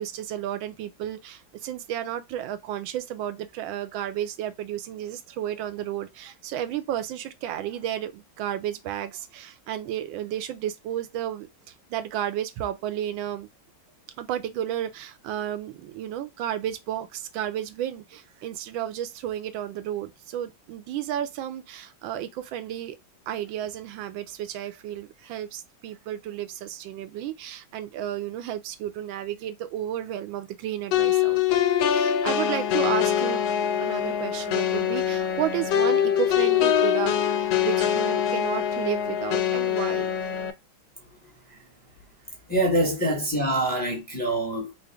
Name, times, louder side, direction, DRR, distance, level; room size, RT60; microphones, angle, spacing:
voice 1, 0.0-11.5 11.9-13.5 14.2-23.0 23.3-33.4 33.8-40.1, right 11 dB, 85° right, 1.3 m, -32 dB
sound 1, 30.9-40.5, left 9 dB, 85° left, 1.3 m, -24 dB
voice 2, 42.5-44.7, right 1 dB, 10° left, 0.6 m, -25 dB
3.9 x 2.1 x 3.4 m
omnidirectional pair, 2.1 m